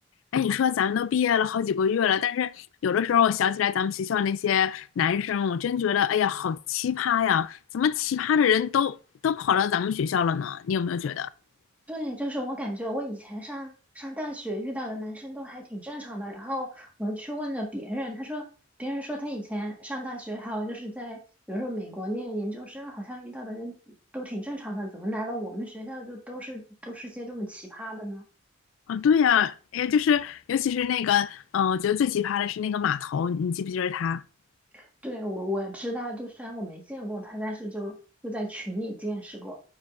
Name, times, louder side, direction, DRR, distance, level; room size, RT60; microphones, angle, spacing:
voice 1, 0.3-9.0 9.2-11.3 28.9-34.2, left 8 dB, 80° left, 0.3 m, -24 dB
voice 2, 11.9-13.7 13.9-18.4 18.8-21.2 21.5-28.2 34.7-38.0 38.2-39.5, equal, 5° right, 1.5 m, -34 dB
9.2 x 4.9 x 2.5 m
head